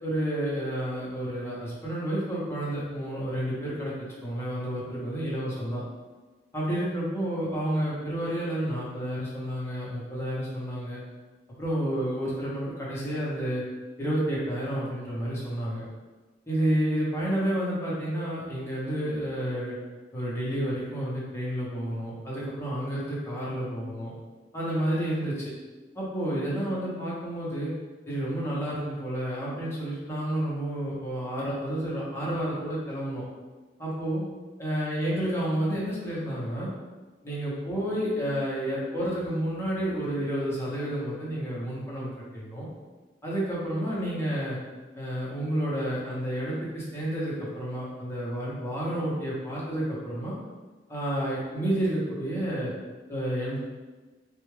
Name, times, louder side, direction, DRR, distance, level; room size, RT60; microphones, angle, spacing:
voice 1, 0.0-3.9 4.2-5.8 6.5-11.0 11.6-13.6 14.0-15.8 16.5-19.7 20.1-24.1 24.5-25.5 25.9-27.7 28.1-33.2 33.8-34.2 34.6-36.7 37.2-42.7 43.2-44.6 44.9-50.3 50.9-52.7 53.1-53.6, right 1 dB, 15° left, -7 dB, 1.0 m, -30 dB
3.4 x 2.5 x 3.2 m, 1.3 s
head